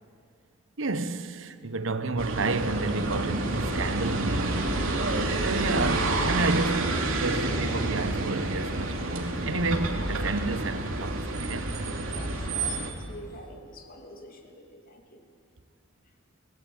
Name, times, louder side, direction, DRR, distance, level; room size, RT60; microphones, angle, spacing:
voice 1, 0.8-4.8 5.4-11.8, right 3 dB, 70° right, 1.1 m, -30 dB
sound 1, 2.2-12.9, right 2 dB, 85° right, 2.9 m, -29 dB
voice 2, 12.0-15.2, equal, 45° left, 3.0 m, -46 dB
25.0 x 18.5 x 9.0 m
head